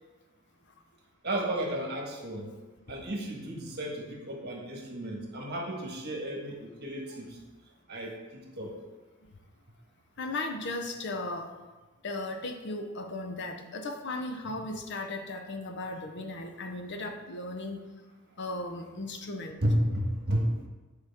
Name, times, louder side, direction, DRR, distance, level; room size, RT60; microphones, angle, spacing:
voice 1, 1.2-2.5 2.9-7.4 7.9-8.8 14.4-14.5 19.6-20.5, right 1 dB, 45° right, -1 dB, 1.4 m, -32 dB
voice 2, 10.2-11.5 12.0-17.8 18.4-19.6, left 2 dB, 50° left, 5 dB, 0.6 m, -36 dB
9.2 x 4.9 x 3.5 m, 1.2 s
head